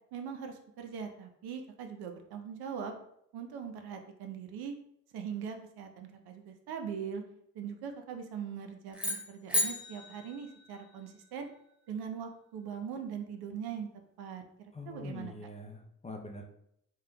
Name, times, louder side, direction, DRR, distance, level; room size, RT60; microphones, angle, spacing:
voice 1, 0.1-3.0 3.3-4.8 5.1-7.2 7.5-11.5 11.9-13.9 14.2-14.4 14.9-15.3, right 7 dB, 65° right, 5 dB, 0.6 m, -41 dB
sound 1, 8.9-11.3, left 1 dB, 5° right, 0.9 m, -34 dB
voice 2, 14.7-16.4, left 2 dB, 15° left, 2 dB, 0.5 m, -44 dB
3.2 x 3.0 x 2.2 m, 0.73 s
hypercardioid pair, 40°, 42 cm